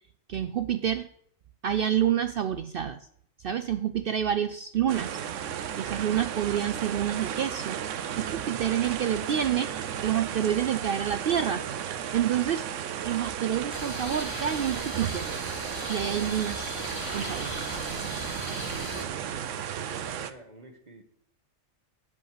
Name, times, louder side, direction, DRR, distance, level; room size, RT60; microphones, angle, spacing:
voice 1, 0.3-1.1 1.6-3.1 3.4-5.2 5.8-11.6 12.1-12.7 13.0-15.3 15.9-16.7 17.1-17.6, right 9 dB, 60° right, 11 dB, 0.6 m, -28 dB
sound 1, 4.9-20.3, right 9 dB, 75° right, 1.0 m, -34 dB
sound 2, 13.7-19.0, left 2 dB, 55° left, 2.5 m, -38 dB
voice 2, 18.7-21.0, right 2 dB, 35° right, 6 dB, 1.4 m, -48 dB
11.5 x 5.4 x 8.0 m, 0.66 s
omnidirectional pair, 1.3 m